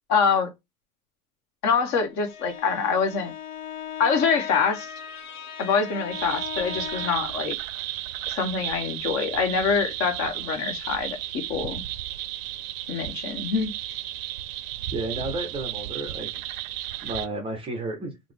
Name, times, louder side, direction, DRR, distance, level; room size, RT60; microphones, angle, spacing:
voice 1, 0.1-0.5 1.6-3.3 4.0-4.9 5.6-7.6 8.3-11.2 11.5-11.8 12.9-13.7, left 5 dB, 40° left, 0.9 m, -25 dB
Bowed string instrument, 2.1-7.4, left 9 dB, 85° left, 0.7 m, -37 dB
sound 1, 6.1-17.3, right 13 dB, 65° right, 0.5 m, -34 dB
voice 2, 14.9-16.7 17.0-18.1, right 2 dB, 15° right, 0.4 m, -32 dB
3.6 x 2.0 x 3.2 m
supercardioid pair, 125°, 42 cm